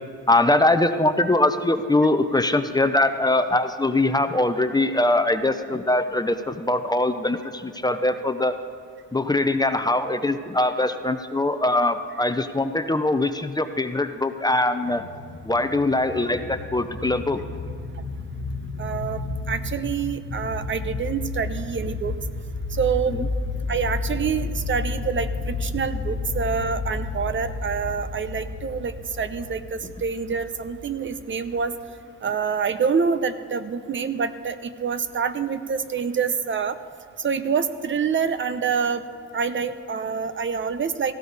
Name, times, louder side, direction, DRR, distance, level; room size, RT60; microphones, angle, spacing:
voice 1, 0.3-8.5 9.1-15.1 15.4-17.4 23.1-23.3, left 2 dB, 15° left, 9 dB, 0.7 m, -22 dB
Deep reversed boom (with reverb), 14.8-31.9, left 3 dB, 80° left, 1.3 m, -32 dB
voice 2, 18.8-19.2 19.5-22.2 22.7-23.2 23.7-31.7 32.2-36.8 37.2-39.0 39.3-41.1, right 6 dB, 40° right, 11 dB, 0.8 m, -26 dB
17.5 x 15.0 x 4.1 m, 2.2 s
cardioid pair, 90°, 30 cm